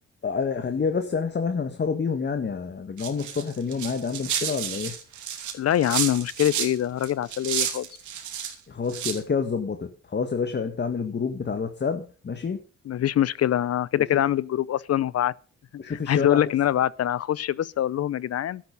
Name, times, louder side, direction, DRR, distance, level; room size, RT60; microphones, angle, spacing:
voice 1, 0.2-4.9 8.7-12.6 14.0-14.2 15.8-16.4, left 5 dB, 35° left, 1.8 m, -28 dB
sound 1, 3.0-6.7 7.0-8.5 8.9-9.2, right 9 dB, 75° right, 3.1 m, -31 dB
voice 2, 5.5-7.9 12.9-15.3 16.1-18.6, left 11 dB, 55° left, 0.7 m, -24 dB
12.5 x 11.5 x 5.4 m
cardioid pair, 90°, 30 cm